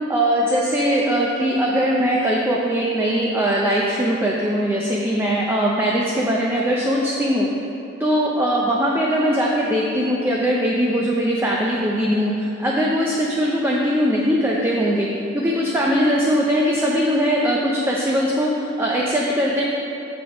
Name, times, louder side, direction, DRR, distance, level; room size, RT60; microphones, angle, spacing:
voice 1, 0.1-7.5 8.0-15.1 15.3-19.6, equal, 10° right, -4 dB, 0.5 m, -20 dB
6.9 x 4.1 x 4.7 m, 2.8 s
head